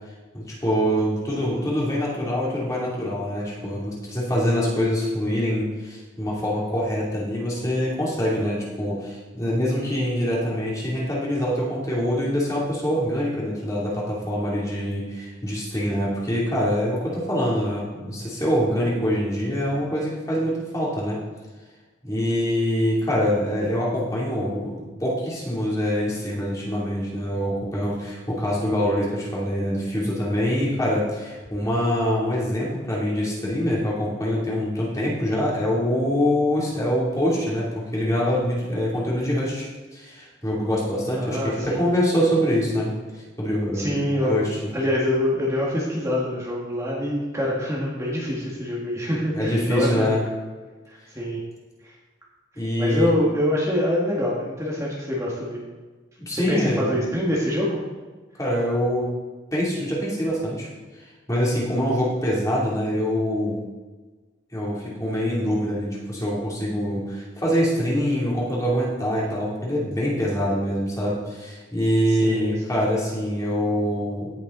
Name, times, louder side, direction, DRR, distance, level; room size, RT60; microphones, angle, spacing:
voice 1, 0.3-21.2 22.0-44.7 49.3-50.2 52.5-53.1 56.3-57.0 58.4-59.1 59.5-60.7 61.3-63.6 64.5-74.3, equal, 15° left, -5 dB, 2.9 m, -24 dB
voice 2, 41.2-41.9 43.7-50.2 50.9-51.4 51.8-51.9 52.8-55.6 56.3-57.8 72.1-72.5, left 1 dB, 15° right, -5 dB, 2.0 m, -25 dB
17.0 x 7.2 x 3.9 m, 1.3 s
head